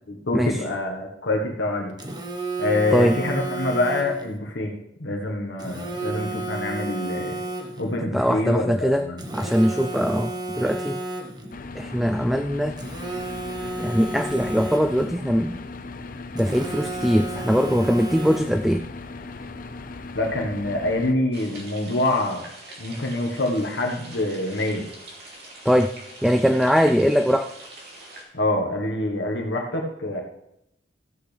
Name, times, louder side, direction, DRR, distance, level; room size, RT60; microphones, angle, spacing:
voice 1, 0.1-1.9 2.6-4.7 5.0-7.4 7.8-9.2 20.1-22.5 22.8-24.8 28.3-30.2, left 2 dB, 75° left, 1 dB, 1.4 m, -26 dB
Telephone, 2.0-4.3 5.6-8.0 9.2-11.5 12.8-15.2 16.4-18.7, right 2 dB, 25° right, 1.1 m, -32 dB
voice 2, 8.1-9.1 9.3-11.0 11.8-12.8 13.8-15.6 16.3-18.9 25.7-26.0 26.2-27.5, equal, ahead, 8 dB, 0.3 m, -21 dB
sound 1, 11.5-21.1, left 3 dB, 50° left, 0.5 m, -38 dB
sound 2, 21.3-28.2, right 1 dB, 60° right, 2.7 m, -43 dB
14.0 x 8.4 x 3.4 m, 0.80 s
head